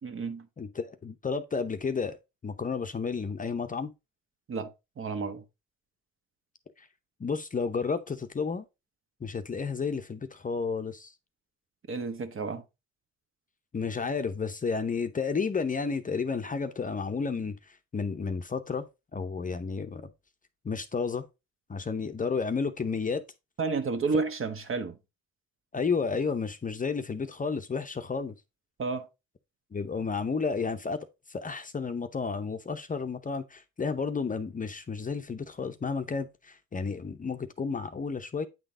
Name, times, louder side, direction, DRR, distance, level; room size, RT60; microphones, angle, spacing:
voice 1, 0.0-0.5 4.5-5.4 11.9-12.6 23.6-25.0 28.8-29.1, right 4 dB, 45° right, 1.3 m, -31 dB
voice 2, 0.6-2.2 2.4-3.9 7.2-8.6 9.2-11.1 13.7-17.6 17.9-18.9 19.1-20.1 20.6-21.3 21.7-23.2 25.7-28.3 29.7-31.0 31.3-38.5, left 5 dB, 25° left, 0.7 m, -31 dB
9.0 x 3.9 x 3.7 m
cardioid pair, 90°, 30 cm